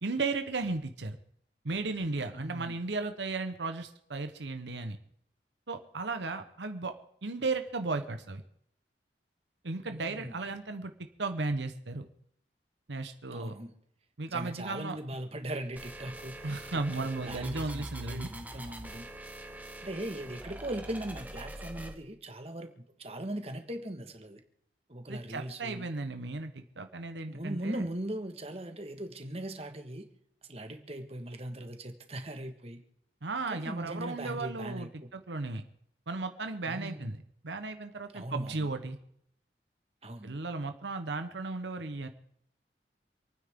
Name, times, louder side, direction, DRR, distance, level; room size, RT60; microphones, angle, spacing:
voice 1, 0.0-1.2 1.6-5.0 5.7-6.9 7.2-8.4 9.6-10.9 11.2-12.1 12.9-13.5 14.2-15.0 16.4-18.3 25.1-27.8 33.2-35.6 36.1-37.2 37.4-39.0 40.2-42.1, right 3 dB, 90° right, 8 dB, 1.0 m, -35 dB
voice 2, 2.3-2.8 9.9-10.5 13.3-13.7 14.3-19.1 19.8-22.7 23.0-24.4 24.9-25.9 27.3-30.1 30.5-32.8 33.5-34.9 36.6-37.1 38.1-38.7 40.0-40.4, right 1 dB, 35° right, 6 dB, 1.6 m, -39 dB
sound 1, 15.8-21.9, right 1 dB, 10° right, 1.1 m, -44 dB
28.0 x 9.6 x 3.7 m, 0.70 s
head